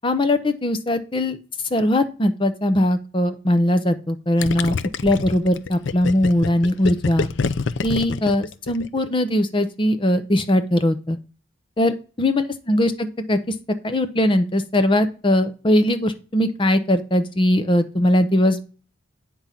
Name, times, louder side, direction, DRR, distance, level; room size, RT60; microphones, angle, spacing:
voice 1, 0.0-1.4 1.7-4.8 5.0-7.3 7.8-11.2 11.8-13.4 13.8-18.6, left 1 dB, 25° left, 10 dB, 0.7 m, -20 dB
Gurgling, 4.4-9.1, left 4 dB, 70° left, 0.5 m, -26 dB
8.6 x 3.8 x 5.8 m, 0.36 s
head